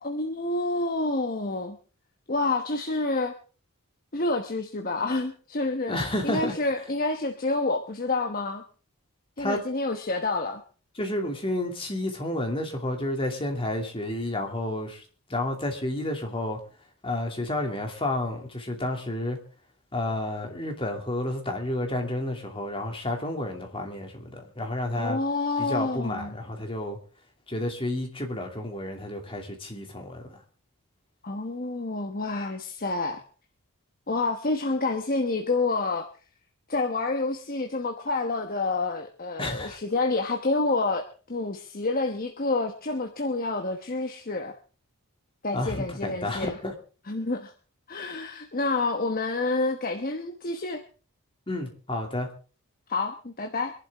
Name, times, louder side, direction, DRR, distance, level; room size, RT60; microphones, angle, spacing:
voice 1, 0.0-1.8 2.3-3.3 4.1-6.0 6.2-8.6 9.4-10.6 25.0-26.4 31.2-33.2 34.1-36.1 36.7-44.5 45.4-46.6 47.1-47.5 47.9-50.8 52.9-53.7, left 3 dB, 40° left, 5 dB, 1.1 m, -28 dB
voice 2, 5.9-6.5 9.4-9.6 11.0-15.0 15.3-16.6 17.0-19.4 19.9-25.2 25.6-27.0 27.5-30.4 39.4-39.8 45.5-46.7 51.5-52.3, left 1 dB, 25° left, 2 dB, 2.5 m, -30 dB
24.5 x 11.5 x 3.6 m, 0.38 s
head